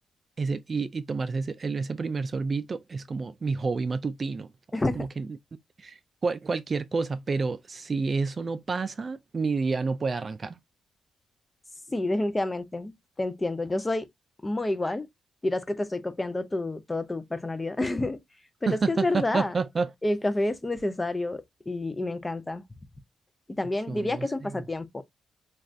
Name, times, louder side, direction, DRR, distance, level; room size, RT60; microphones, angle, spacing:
voice 1, 0.4-4.5 4.9-5.4 5.8-10.6 18.7-19.9 23.9-24.6, right 4 dB, 40° right, 0.3 m, -29 dB
voice 2, 4.7-5.1 11.9-14.1 14.4-15.1 15.4-18.2 18.6-19.5 20.0-22.6 23.6-25.0, left 2 dB, 20° left, 0.5 m, -29 dB
3.3 x 2.4 x 2.4 m
cardioid pair, 85°, 0 cm